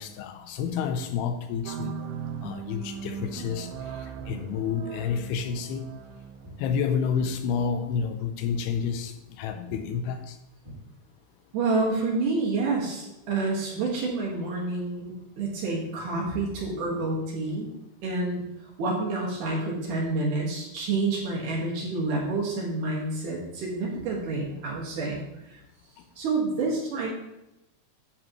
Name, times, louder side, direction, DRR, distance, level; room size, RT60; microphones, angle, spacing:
voice 1, 0.0-1.9 2.4-3.7 4.0-5.9 6.6-10.4, left 6 dB, 80° left, 7 dB, 2.6 m, -29 dB
sound 1, 1.7-7.9, right 7 dB, 80° right, 2.2 m, -39 dB
Walk footsteps, 3.0-3.3 4.2-4.4 5.2-5.5 5.8-7.2 7.5-7.7 8.1-8.3 8.6-8.8 9.1-9.4 9.6-9.9 10.6-11.3, right 1 dB, 15° right, 1.2 m, -48 dB
voice 2, 11.5-17.7 18.0-25.2 25.5-25.6 26.2-27.1, right 3 dB, 60° right, -3 dB, 2.9 m, -28 dB
10.5 x 7.6 x 3.1 m, 0.90 s
omnidirectional pair, 4.7 m